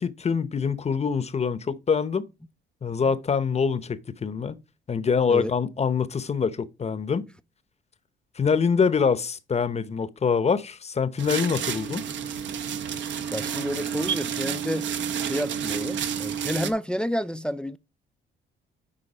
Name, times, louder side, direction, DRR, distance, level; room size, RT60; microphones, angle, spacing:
voice 1, 0.0-2.2 2.8-4.6 4.9-7.2 8.4-12.0, left 6 dB, 35° left, 0.8 m, -25 dB
sound 1, 11.2-16.7, right 7 dB, 70° right, 1.0 m, -30 dB
voice 2, 13.3-14.9 15.2-17.8, equal, 5° left, 0.4 m, -30 dB
9.8 x 3.9 x 5.0 m
cardioid pair, 90°, 20 cm